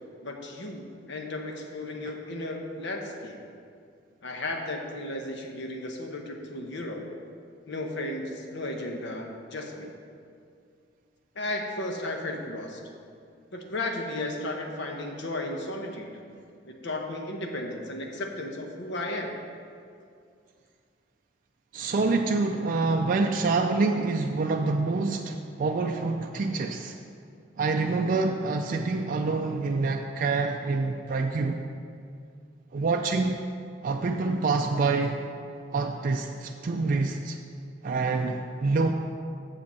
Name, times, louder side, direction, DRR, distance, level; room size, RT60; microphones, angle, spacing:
voice 1, 0.2-3.4 4.2-7.0 7.7-9.9 11.3-12.8 13.5-16.1 16.7-19.3, left 1 dB, 70° left, 2 dB, 1.0 m, -34 dB
voice 2, 21.7-27.0 27.6-31.6 32.7-33.4 33.8-35.2 35.7-37.4 37.8-38.9, right 3 dB, 45° right, 3 dB, 0.4 m, -26 dB
7.0 x 5.2 x 6.9 m, 2.4 s
head